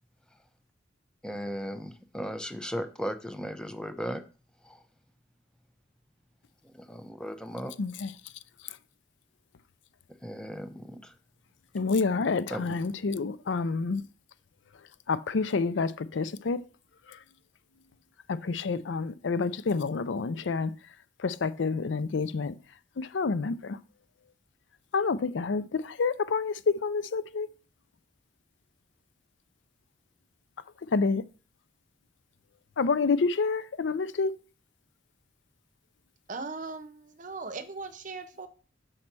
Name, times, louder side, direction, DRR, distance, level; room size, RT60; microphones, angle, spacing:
voice 1, 1.2-4.2 4.6-4.8 6.6-7.7 10.2-11.1 12.5-12.8, equal, 5° left, 0.7 m, -36 dB
voice 2, 7.8-8.1 11.7-14.0 15.1-16.6 17.1-17.2 18.3-20.7 21.2-22.5 23.0-23.8 24.9-27.5 30.9-31.2 32.8-34.3, left 4 dB, 80° left, 0.5 m, -28 dB
voice 3, 36.3-38.5, right 4 dB, 45° right, 0.8 m, -39 dB
6.5 x 4.3 x 6.0 m
head